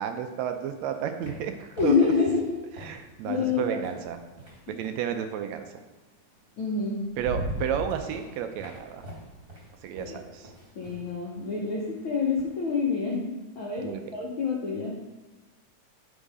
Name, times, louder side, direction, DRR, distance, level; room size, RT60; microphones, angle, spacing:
voice 1, 0.0-2.1 2.8-4.2 4.8-5.6 7.2-9.0 9.8-10.5 13.8-14.0, right 9 dB, 80° right, 7 dB, 1.6 m, -32 dB
sound 1, 0.6-5.1 6.4-6.5 6.9-12.5, equal, 25° right, 1.2 m, -41 dB
voice 2, 1.8-2.5 3.2-3.8 6.6-7.0 10.0-10.2 10.8-15.0, left 5 dB, 80° left, -4 dB, 1.1 m, -27 dB
9.4 x 3.6 x 4.8 m, 1.2 s
omnidirectional pair, 3.7 m